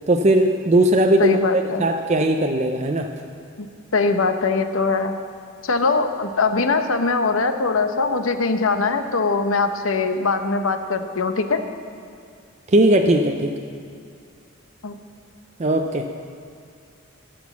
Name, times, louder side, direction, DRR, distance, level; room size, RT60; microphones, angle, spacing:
voice 1, 0.1-3.1 12.7-13.5 15.6-16.0, right 1 dB, 30° right, 4 dB, 0.5 m, -18 dB
voice 2, 1.2-1.9 3.6-3.7 3.9-5.1 5.6-11.6 14.8-14.9, left 4 dB, 75° left, 8 dB, 0.8 m, -21 dB
16.0 x 6.2 x 7.1 m, 2.3 s
head